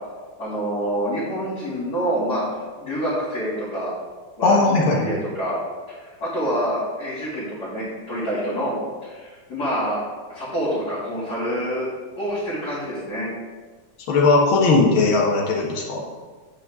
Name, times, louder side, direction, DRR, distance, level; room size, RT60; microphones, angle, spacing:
voice 1, 0.4-3.9 4.4-5.6 5.9-10.0 10.3-11.9 12.2-13.3, equal, 50° left, -12 dB, 3.1 m, -27 dB
voice 2, 4.4-5.0 14.1-16.0, left 3 dB, 80° left, -2 dB, 2.2 m, -18 dB
8.9 x 8.2 x 3.6 m, 1.4 s
omnidirectional pair, 2.2 m